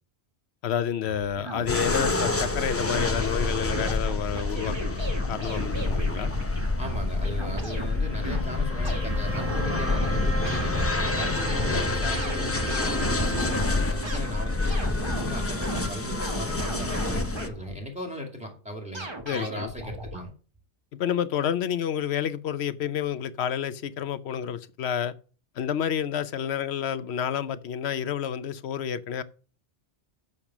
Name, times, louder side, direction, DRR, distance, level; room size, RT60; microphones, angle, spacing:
voice 1, 0.6-5.0 5.3-6.3 19.3-19.7 20.9-25.1 25.6-29.2, left 9 dB, 70° left, 0.9 m, -29 dB
sound 1, 1.0-7.9 8.2-8.5 8.8-10.7 11.1-11.9 12.1-15.9 16.2-17.8 18.9-20.2, right 1 dB, 25° right, 1.4 m, -37 dB
sound 2, 1.7-17.5, left 2 dB, 15° left, 0.5 m, -27 dB
sound 3, 6.7-16.1, right 2 dB, 85° right, 3.9 m, -40 dB
voice 2, 6.8-20.3, equal, 5° right, 2.3 m, -38 dB
7.2 x 6.6 x 6.0 m
omnidirectional pair, 1.2 m